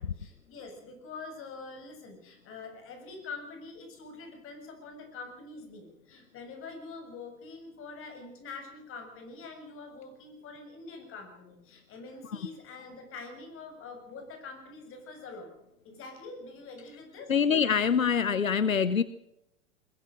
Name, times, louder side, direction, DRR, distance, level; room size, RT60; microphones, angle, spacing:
voice 1, 0.0-15.5 15.8-17.3, left 4 dB, 30° left, 5 dB, 7.3 m, -45 dB
voice 2, 17.3-19.0, left 7 dB, 85° left, 16 dB, 0.9 m, -25 dB
22.0 x 20.5 x 6.5 m, 0.83 s
figure-of-eight pair, 90°, 39 cm